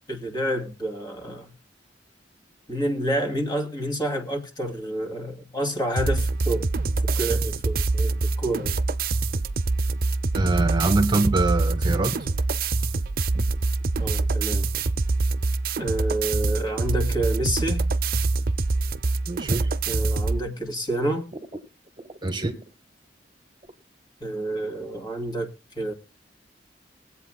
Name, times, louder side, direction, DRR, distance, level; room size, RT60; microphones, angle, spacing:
voice 1, 0.1-1.5 2.7-6.6 7.1-8.8 14.0-14.7 15.8-17.8 19.9-21.3 24.2-25.5 25.8-25.9, right 1 dB, 25° left, 2.5 m, -28 dB
sound 1, 6.0-20.4, right 3 dB, 55° right, 0.6 m, -25 dB
voice 2, 10.3-12.3 19.3-19.7 22.2-22.6, right 2 dB, 25° right, 1.5 m, -24 dB
22.0 x 8.3 x 2.3 m
head